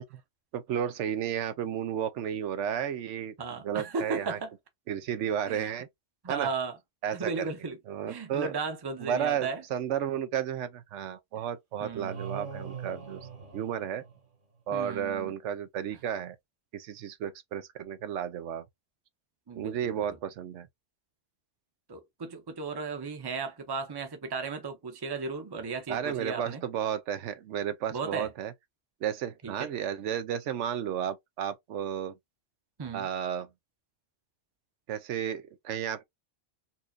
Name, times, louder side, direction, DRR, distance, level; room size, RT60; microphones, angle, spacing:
voice 1, 0.5-3.3 3.6-4.4 4.9-5.9 6.3-6.5 7.0-7.5 7.9-8.5 9.0-13.3 13.5-14.0 14.7-16.4 16.7-18.6 19.6-20.7 25.9-28.5 29.0-32.1 32.9-33.5 34.9-36.0, right 9 dB, 80° right, 0.9 m, -33 dB
voice 2, 3.4-4.5 5.5-5.7 6.2-6.8 7.1-7.8 8.1-9.6 11.8-12.2 14.7-15.3 19.5-20.1 21.9-26.6 27.9-28.3 29.4-29.7 32.8-33.1, right 4 dB, 25° right, 0.6 m, -35 dB
sound 1, 12.0-14.5, right 6 dB, 45° right, 1.2 m, -42 dB
4.2 x 2.4 x 2.6 m
omnidirectional pair, 1.2 m